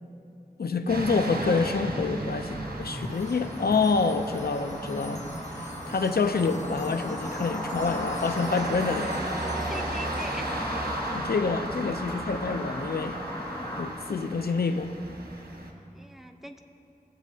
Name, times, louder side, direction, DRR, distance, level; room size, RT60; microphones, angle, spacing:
voice 1, 0.6-5.2 5.6-9.1 11.1-13.2 13.8-14.9, left 4 dB, 90° left, 9 dB, 0.5 m, -27 dB
sound 1, 0.9-15.7, right 1 dB, 80° right, 1.1 m, -36 dB
sound 2, 2.4-13.8, equal, 20° left, 1.9 m, -36 dB
Wind chime, 3.0-11.2, left 2 dB, 45° left, 0.9 m, -51 dB
voice 2, 9.7-10.9 15.9-16.6, right 1 dB, ahead, 5 dB, 0.6 m, -42 dB
17.5 x 7.2 x 2.7 m, 2.8 s
wide cardioid pair, 45°, 16 cm